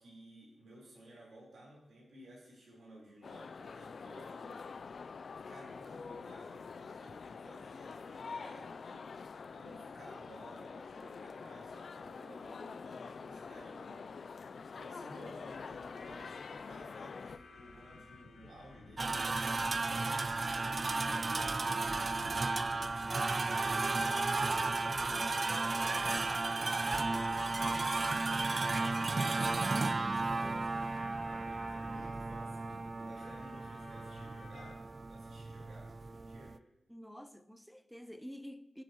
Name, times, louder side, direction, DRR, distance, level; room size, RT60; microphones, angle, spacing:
voice 1, 0.0-4.9 5.3-9.1 9.5-22.7 23.3-25.2 25.5-29.1 29.9-36.5, right 1 dB, 70° right, 4.3 m, -56 dB
sound 1, 3.2-17.4, left 5 dB, 55° left, 0.4 m, -46 dB
sound 2, 15.5-34.7, left 4 dB, 80° left, 1.3 m, -55 dB
sound 3, 19.0-36.6, right 3 dB, 35° right, 0.4 m, -34 dB
voice 2, 29.5-30.7 36.9-38.8, equal, ahead, 0.7 m, -50 dB
22.5 x 7.6 x 3.1 m
wide cardioid pair, 135°, 0 cm